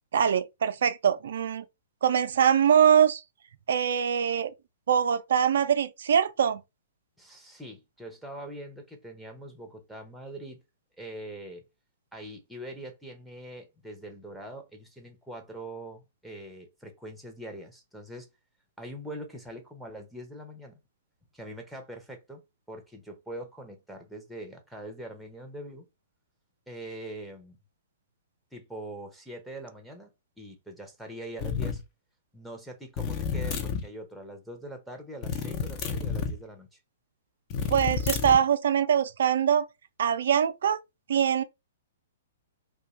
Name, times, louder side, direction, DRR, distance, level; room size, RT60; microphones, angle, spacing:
voice 1, 0.1-1.6 2.0-3.2 3.7-4.5 4.9-6.6 37.7-39.7 40.0-40.8 41.1-41.4, right 8 dB, 65° right, 0.4 m, -23 dB
voice 2, 7.2-10.6 11.0-11.6 12.1-18.3 18.8-20.8 21.3-22.4 22.7-25.9 26.7-27.6 28.5-31.8 32.3-36.8, right 1 dB, ahead, 0.7 m, -43 dB
sound 1, 31.4-31.8 33.0-33.9 35.2-36.4 37.5-38.5, left 6 dB, 35° left, 0.6 m, -30 dB
2.4 x 2.2 x 3.0 m
figure-of-eight pair, 120°, 0 cm